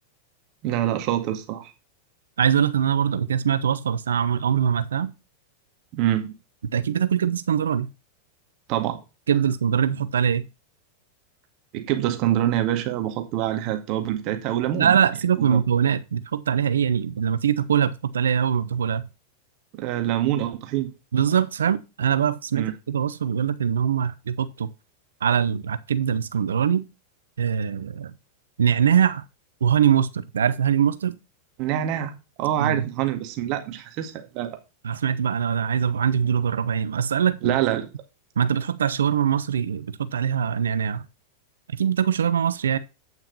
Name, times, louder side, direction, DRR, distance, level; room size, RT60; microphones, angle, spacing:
voice 1, 0.6-1.7 5.9-6.3 8.7-9.0 11.7-14.9 15.4-15.6 19.7-20.9 22.5-22.7 31.6-32.1 32.4-34.6 37.4-37.9, right 12 dB, 40° right, 1.8 m, -25 dB
voice 2, 2.4-5.1 6.7-7.9 9.3-10.4 14.8-19.1 21.1-24.7 25.2-26.8 27.4-28.1 28.6-29.2 29.6-31.1 32.6-32.9 34.8-37.6 38.4-41.0 41.8-42.8, right 8 dB, 65° right, 0.7 m, -22 dB
9.2 x 5.8 x 5.3 m
figure-of-eight pair, 90°, 0 cm